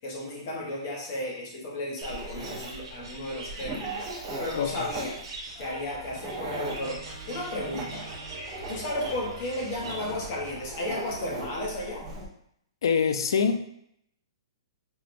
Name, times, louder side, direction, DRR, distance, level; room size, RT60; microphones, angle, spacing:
voice 1, 0.0-4.1 4.4-5.2 5.6-7.0 7.3-8.1 8.7-12.1, left 1 dB, 30° left, -2 dB, 0.7 m, -34 dB
sound 1, 1.9-10.0, right 2 dB, 65° right, 1.0 m, -43 dB
Dog, 2.0-12.2, right 2 dB, 15° right, 0.4 m, -40 dB
sound 2, 6.4-11.5, right 2 dB, 85° right, 0.8 m, -45 dB
voice 2, 12.8-13.7, left 6 dB, 65° left, 8 dB, 0.3 m, -24 dB
4.5 x 2.0 x 2.5 m, 0.72 s
hypercardioid pair, 180°, 3 cm